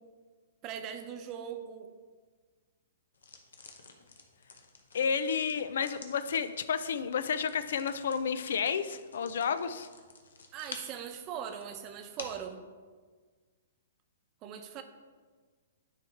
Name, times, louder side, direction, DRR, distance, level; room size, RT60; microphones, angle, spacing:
voice 1, 0.6-1.9 10.5-12.6 14.4-14.8, right 8 dB, 35° right, 7 dB, 0.7 m, -40 dB
sound 1, 3.1-12.5, left 4 dB, 90° left, 0.9 m, -51 dB
voice 2, 4.9-9.9, left 6 dB, 70° left, 12 dB, 0.4 m, -31 dB
9.9 x 4.7 x 3.5 m, 1.5 s
hypercardioid pair, 135°, 0 cm